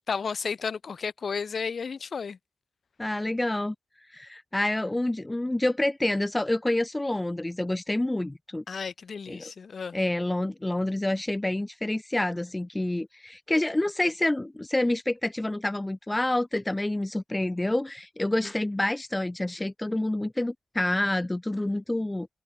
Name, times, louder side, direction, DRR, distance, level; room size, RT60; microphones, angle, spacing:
voice 1, 0.1-2.4 8.7-10.0, left 5 dB, 60° left, 1.4 m, -33 dB
voice 2, 3.0-3.7 4.1-8.6 9.3-9.5 9.9-22.3, left 1 dB, 15° left, 0.6 m, -28 dB
cardioid pair, 65°, 0 cm